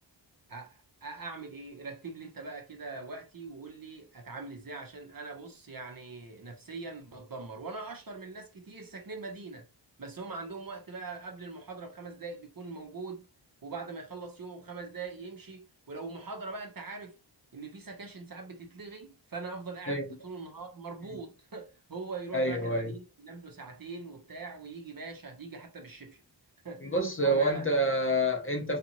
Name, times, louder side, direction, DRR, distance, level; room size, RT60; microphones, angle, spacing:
voice 1, 0.5-9.7 10.0-13.3 13.6-17.2 17.5-26.2 26.6-27.8, right 3 dB, 45° right, 0.8 m, -42 dB
voice 2, 22.3-22.9 26.8-28.8, right 1 dB, 30° left, 0.6 m, -27 dB
2.6 x 2.5 x 2.8 m
wide cardioid pair, 65°, 46 cm